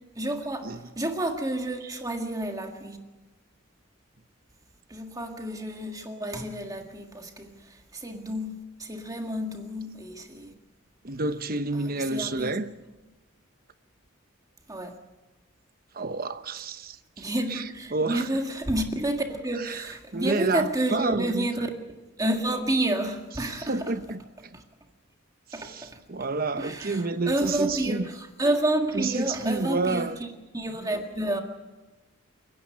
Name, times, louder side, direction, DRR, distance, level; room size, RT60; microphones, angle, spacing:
voice 1, 0.2-3.0 4.9-10.5 11.7-12.6 14.7-15.0 17.2-21.7 22.2-23.9 24.5-24.6 25.5-26.0 26.6-30.1 30.5-31.4, right 1 dB, 15° right, 1.8 m, -30 dB
voice 2, 11.0-12.7 15.9-18.3 19.6-21.5 23.6-24.2 25.5-28.1 28.9-30.2 30.8-30.9, right 3 dB, 45° right, 1.0 m, -29 dB
29.5 x 10.0 x 9.7 m
head